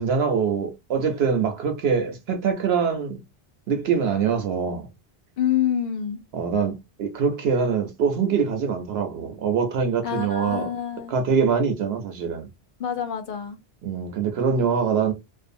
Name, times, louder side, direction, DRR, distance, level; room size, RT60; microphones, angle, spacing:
voice 1, 0.0-3.2 3.7-4.9 6.3-10.7 11.1-12.5 13.8-15.1, right 6 dB, 75° right, 0.8 m, -24 dB
voice 2, 5.4-6.2 10.0-11.1 12.8-13.6, left 9 dB, 60° left, 0.8 m, -26 dB
2.6 x 2.4 x 2.5 m
omnidirectional pair, 1.1 m